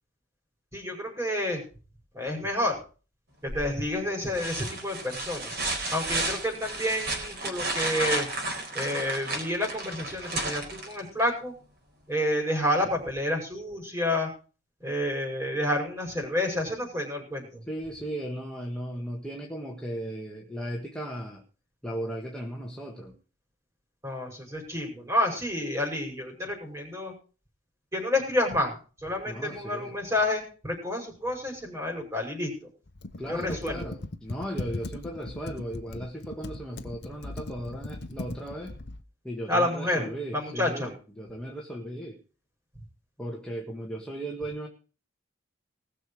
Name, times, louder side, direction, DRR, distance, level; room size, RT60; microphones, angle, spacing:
voice 1, 0.7-1.6 2.1-2.8 3.4-5.5 5.9-8.3 8.7-11.5 12.1-14.3 14.8-17.6 24.0-27.1 27.9-32.5 33.3-33.9 39.5-40.9, left 1 dB, 15° right, 2 dB, 5.6 m, -29 dB
sound 1, 3.5-3.9 4.3-11.3 13.1-13.2, right 2 dB, 45° right, 4.6 m, -32 dB
voice 2, 17.6-21.4 21.8-23.2 29.3-29.9 33.2-38.7 39.2-42.2 43.2-44.7, equal, 5° left, -1 dB, 1.6 m, -36 dB
Computer keyboard, 32.9-39.0, left 2 dB, 50° left, 0.9 m, -39 dB
19.5 x 6.8 x 6.4 m, 0.37 s
head